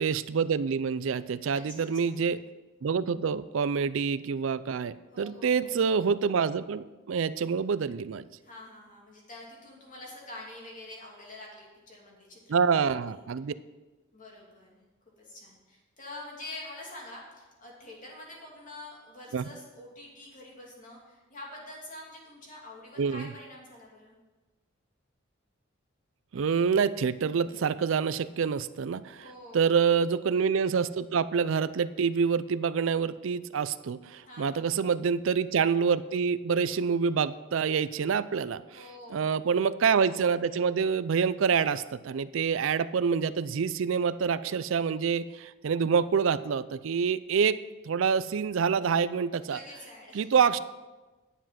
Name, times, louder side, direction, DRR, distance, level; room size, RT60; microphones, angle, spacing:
voice 1, 0.0-2.4 2.8-8.2 12.5-13.5 19.3-19.5 23.0-23.3 26.3-29.2 29.5-38.8 39.1-47.6 47.8-49.6 50.1-50.6, right 6 dB, 65° right, 16 dB, 0.4 m, -27 dB
voice 2, 1.5-2.2 5.1-5.8 8.4-13.2 14.1-14.8 15.2-24.2 29.1-29.7 34.2-34.8 38.7-39.3 49.5-50.4, left 2 dB, 40° left, -3 dB, 2.7 m, -46 dB
10.0 x 7.3 x 5.7 m, 1.2 s
head